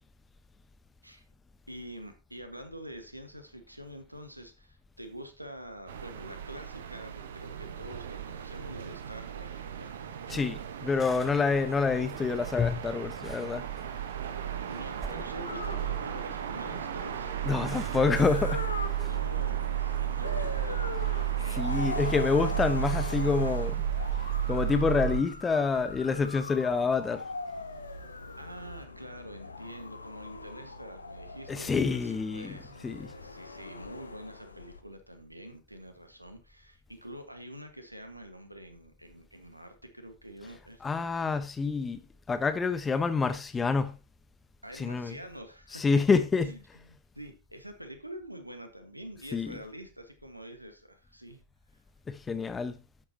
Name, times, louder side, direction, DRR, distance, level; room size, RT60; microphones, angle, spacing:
voice 1, 1.7-9.9 14.7-17.3 18.9-22.4 28.4-41.2 44.6-45.8 46.4-51.4, equal, 85° right, 1.6 m, -46 dB
sound 1, 5.9-25.2, right 12 dB, 60° right, 1.1 m, -33 dB
voice 2, 10.3-13.6 17.4-19.1 21.5-23.8 24.5-27.2 31.5-32.6 32.8-33.1 40.8-42.0 42.3-43.9 44.7-45.2 45.7-46.5 49.3-49.6 52.1-52.8, left 5 dB, 15° left, 1.1 m, -27 dB
sound 2, 14.9-21.4, right 4 dB, 15° right, 1.7 m, -46 dB
sound 3, 15.5-34.8, left 3 dB, 80° left, 0.9 m, -41 dB
12.0 x 8.5 x 2.9 m
figure-of-eight pair, 90°, 0 cm